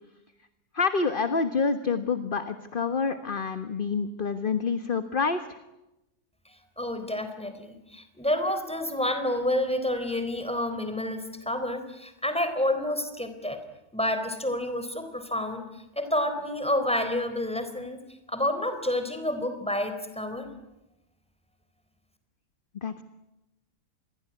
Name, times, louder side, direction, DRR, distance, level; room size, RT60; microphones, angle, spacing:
voice 1, 0.7-5.6 22.8-23.0, left 5 dB, 35° left, 9 dB, 1.5 m, -27 dB
voice 2, 6.5-13.6 13.9-18.0 18.3-20.5, left 1 dB, 5° left, 8 dB, 3.8 m, -29 dB
27.5 x 22.0 x 9.7 m, 0.94 s
omnidirectional pair, 1.6 m